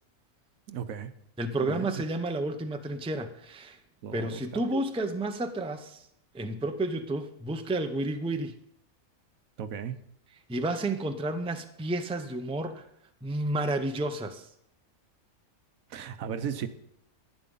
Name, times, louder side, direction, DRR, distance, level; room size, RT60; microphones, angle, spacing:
voice 1, 0.7-1.1 1.6-2.0 4.0-4.6 9.6-10.0 15.9-16.7, right 8 dB, 75° right, 11 dB, 1.2 m, -36 dB
voice 2, 1.4-3.8 4.1-6.0 6.3-8.6 10.5-12.8 13.2-14.5, right 2 dB, 5° right, 7 dB, 0.5 m, -31 dB
11.0 x 9.9 x 5.5 m, 0.74 s
omnidirectional pair, 1.4 m